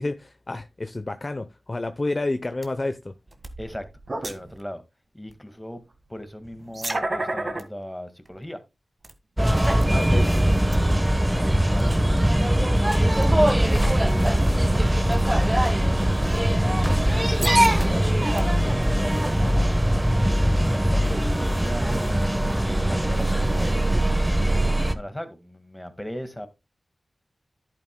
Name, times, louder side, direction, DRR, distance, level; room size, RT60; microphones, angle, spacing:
voice 1, 0.0-3.1 9.9-10.3 17.4-18.1, left 2 dB, 35° left, 0.7 m, -30 dB
sound 1, 2.6-2.7 3.3-4.6 5.3-5.4 6.5-7.6 8.3-8.4 9.0-9.1 9.7-10.4 10.7-10.8 11.8-11.9 12.2-12.4 13.2-13.5 14.2-14.5 15.1-15.2 16.1-16.2 17.2-18.8, right 2 dB, 45° right, 1.7 m, -30 dB
voice 2, 4.2-4.8 5.1-5.8 6.1-8.6 9.9-10.3 11.2-16.1 18.8-22.1 22.5-23.8 24.9-26.5, equal, 10° left, 1.7 m, -39 dB
sound 2, 9.4-24.9, right 1 dB, 10° right, 1.1 m, -21 dB
10.5 x 9.1 x 2.2 m
cardioid pair, 60°, 0 cm